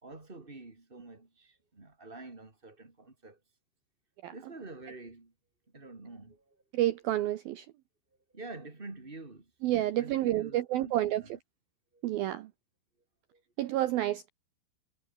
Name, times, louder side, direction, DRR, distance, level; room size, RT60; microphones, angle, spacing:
voice 1, 0.0-3.4 4.3-5.3 5.7-6.6 8.3-9.5 9.8-11.4 11.9-12.0 13.3-13.4, right 2 dB, 15° right, 1.8 m, -47 dB
voice 2, 6.7-7.7 9.6-11.2 12.0-12.5 13.6-14.3, right 14 dB, 85° right, 2.1 m, -29 dB
omnidirectional pair, 5.4 m